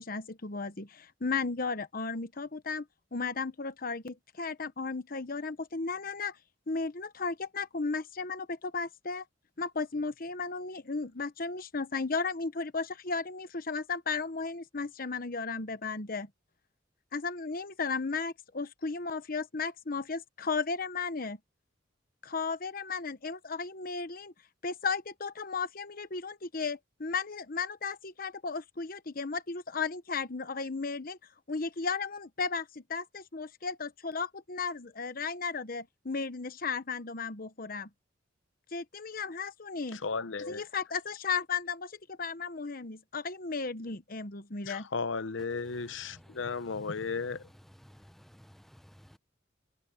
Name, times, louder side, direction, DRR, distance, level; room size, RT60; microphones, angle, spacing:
voice 1, 0.0-2.9 3.1-6.4 6.7-9.2 9.6-16.3 17.1-21.4 22.2-24.3 24.6-31.2 31.5-32.6 32.9-37.9 38.7-40.0 40.5-44.9, left 4 dB, 50° left, 1.0 m, -35 dB
voice 2, 39.9-40.6 44.6-47.5, left 4 dB, 85° left, 0.8 m, -35 dB
voice 3, 47.8-49.2, equal, ahead, 0.8 m, -56 dB
head